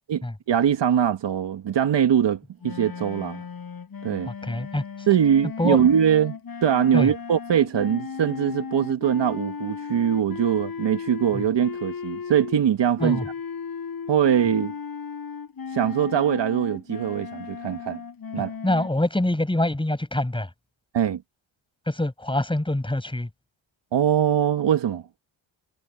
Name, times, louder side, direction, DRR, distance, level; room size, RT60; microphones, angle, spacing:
voice 1, 0.1-3.4 4.0-4.3 5.1-13.2 14.1-14.7 15.7-18.0 18.3-18.5 20.9-21.2 23.9-25.0, right 9 dB, 60° right, 2.0 m, -22 dB
sound 1, 2.6-12.6 13.0-18.9, left 6 dB, 45° left, 7.4 m, -36 dB
voice 2, 4.3-4.8 5.6-5.8 6.9-7.1 13.0-13.2 18.6-20.5 21.9-23.3, left 1 dB, 10° left, 7.3 m, -25 dB
cardioid pair, 80°, 48 cm